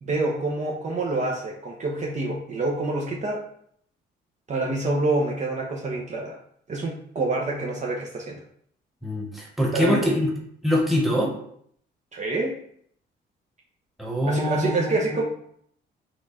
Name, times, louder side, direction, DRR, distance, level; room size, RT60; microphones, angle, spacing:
voice 1, 0.0-3.5 4.5-6.4 6.7-8.4 9.7-10.1 12.1-12.6 14.2-15.2, right 2 dB, 35° right, -2 dB, 0.7 m, -27 dB
voice 2, 9.0-10.3 10.6-11.3 14.0-15.2, equal, ahead, -2 dB, 1.2 m, -24 dB
4.4 x 2.4 x 4.0 m, 0.66 s
cardioid pair, 90°, 20 cm